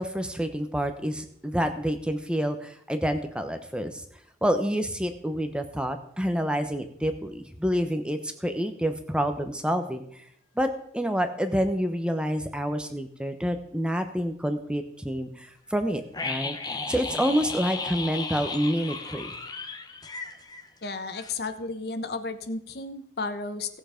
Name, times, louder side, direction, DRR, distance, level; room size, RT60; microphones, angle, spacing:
voice 1, 0.0-4.0 4.4-10.0 10.6-10.7 10.9-16.6 16.9-19.4, equal, 5° right, 7 dB, 0.9 m, -28 dB
sound 1, 16.1-21.0 21.2-21.3, left 4 dB, 20° left, 0.8 m, -35 dB
voice 2, 20.8-23.8, left 3 dB, 60° left, 9 dB, 1.0 m, -33 dB
17.0 x 7.2 x 5.1 m, 0.69 s
head